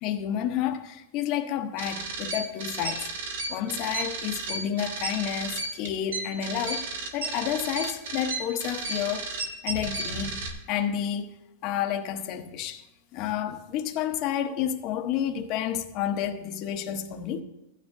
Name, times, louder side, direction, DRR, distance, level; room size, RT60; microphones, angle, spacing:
voice 1, 0.0-3.1 3.5-6.9 7.1-9.3 9.6-11.3 11.6-12.8 13.1-17.4, left 10 dB, 35° left, 0.9 m, -30 dB
sound 1, 1.8-10.5, right 3 dB, 75° right, 2.1 m, -33 dB
16.0 x 9.6 x 2.6 m
supercardioid pair, 160°, 0 cm